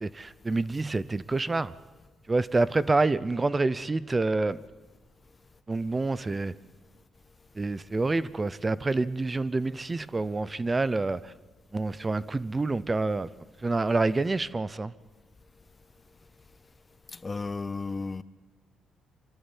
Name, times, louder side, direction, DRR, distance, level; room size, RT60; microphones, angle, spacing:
voice 1, 0.0-1.7 2.3-4.6 5.7-6.5 7.6-11.3 11.7-13.3 13.6-14.9, right 3 dB, 25° right, 0.6 m, -27 dB
voice 2, 17.1-18.2, left 4 dB, 25° left, 0.7 m, -33 dB
24.5 x 12.5 x 9.7 m
cardioid pair, 90°, 0 cm